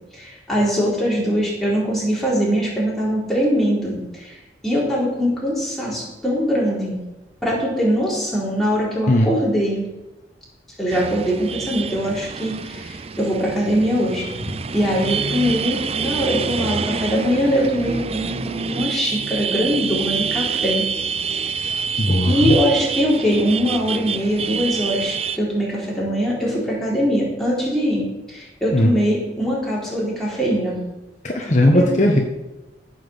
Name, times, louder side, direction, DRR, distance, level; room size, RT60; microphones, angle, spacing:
voice 1, 0.1-4.4 4.6-7.0 7.4-9.8 10.8-14.3 14.7-20.9 21.3-21.7 22.2-30.8 31.7-31.9, equal, ahead, -6 dB, 4.0 m, -22 dB
sound 1, 10.9-25.4, right 6 dB, 35° right, 0.5 m, -27 dB
voice 2, 22.0-22.5 28.7-28.9 31.2-32.2, left 1 dB, 40° left, 1 dB, 1.3 m, -17 dB
14.5 x 6.1 x 7.2 m, 1.1 s
head